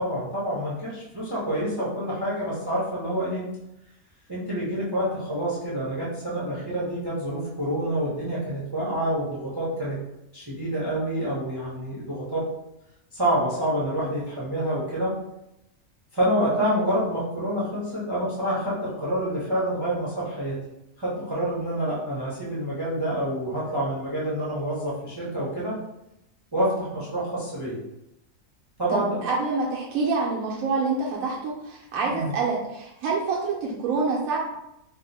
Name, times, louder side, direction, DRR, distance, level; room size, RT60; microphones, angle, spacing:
voice 1, 0.0-3.4 4.3-10.0 10.3-12.5 13.1-15.2 16.1-20.6 21.0-25.8 26.5-27.8 28.8-29.2 32.0-32.3, right 1 dB, 30° right, -7 dB, 0.5 m, -27 dB
voice 2, 28.9-34.4, right 4 dB, 85° right, -3 dB, 1.0 m, -27 dB
2.8 x 2.0 x 3.9 m, 0.86 s
omnidirectional pair, 1.4 m